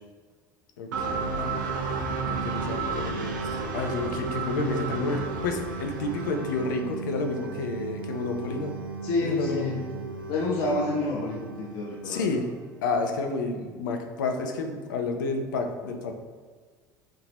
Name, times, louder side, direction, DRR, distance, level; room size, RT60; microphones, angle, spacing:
voice 1, 0.8-1.6 2.3-8.8 9.2-9.7 12.0-12.5 12.8-16.1, left 3 dB, 80° left, 4 dB, 0.5 m, -30 dB
sound 1, 0.9-12.7, right 4 dB, 85° right, 0.6 m, -33 dB
voice 2, 9.0-9.8 10.3-12.4, left 2 dB, 60° left, -3 dB, 0.9 m, -28 dB
5.4 x 2.9 x 2.9 m, 1.5 s
hypercardioid pair, 75°, 10 cm